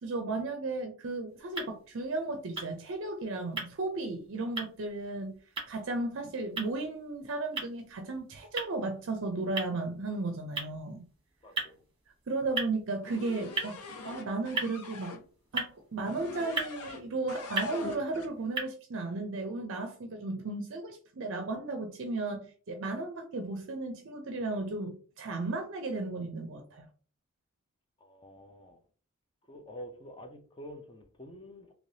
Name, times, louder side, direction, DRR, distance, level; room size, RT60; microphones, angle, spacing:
voice 1, 0.0-5.4 5.7-11.0 12.3-15.2 15.5-26.9, right 2 dB, 55° right, 0.5 m, -35 dB
sound 1, 1.3-18.6, right 4 dB, 25° right, 1.1 m, -41 dB
voice 2, 11.4-11.8 28.0-28.8 29.4-31.7, equal, 20° left, 0.5 m, -48 dB
sound 2, 13.0-15.2 16.1-17.0 17.3-18.3, left 4 dB, 90° left, 0.6 m, -43 dB
3.2 x 2.9 x 2.7 m
head